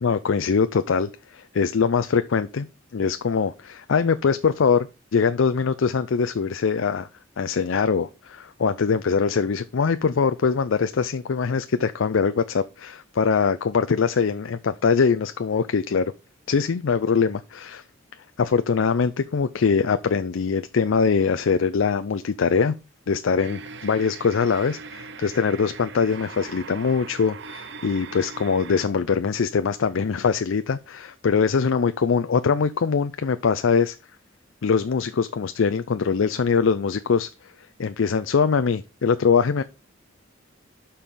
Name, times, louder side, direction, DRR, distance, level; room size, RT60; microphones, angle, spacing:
voice 1, 0.0-2.7 2.9-4.9 5.1-7.1 7.4-16.1 16.5-17.8 18.4-22.7 23.1-34.0 34.6-37.5 37.8-39.6, left 5 dB, 70° left, 0.5 m, -22 dB
sound 1, 23.4-28.9, right 4 dB, 55° right, 0.6 m, -39 dB
12.0 x 4.3 x 3.7 m
head